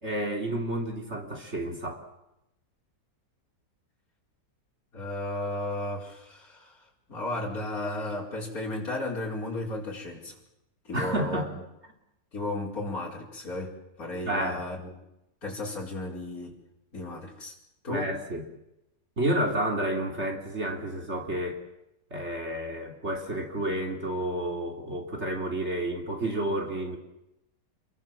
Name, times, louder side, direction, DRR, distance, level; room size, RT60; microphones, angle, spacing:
voice 1, 0.0-2.0 10.9-11.5 14.2-14.6 17.9-18.4 19.2-21.6 22.1-27.0, right 1 dB, 40° right, 2 dB, 3.4 m, -30 dB
voice 2, 4.9-6.8 7.1-10.3 10.9-11.4 12.3-14.9 15.4-16.6 16.9-17.5 17.8-18.1, left 2 dB, 55° left, -3 dB, 5.3 m, -34 dB
28.0 x 22.5 x 7.5 m, 0.86 s
omnidirectional pair, 1.8 m